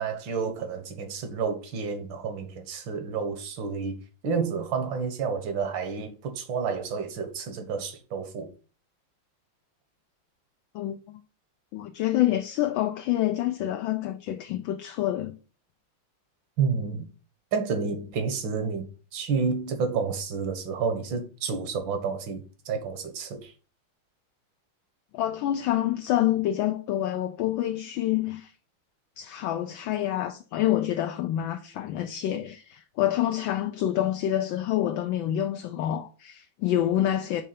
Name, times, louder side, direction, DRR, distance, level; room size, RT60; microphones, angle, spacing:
voice 1, 0.0-4.0 4.2-8.5 16.6-17.1 17.5-23.5, right 5 dB, 65° right, 1.8 m, -30 dB
voice 2, 10.7-11.2 11.7-15.3 25.1-28.5 29.2-37.4, left 12 dB, 75° left, 1.3 m, -27 dB
6.9 x 3.2 x 5.0 m
omnidirectional pair, 2.3 m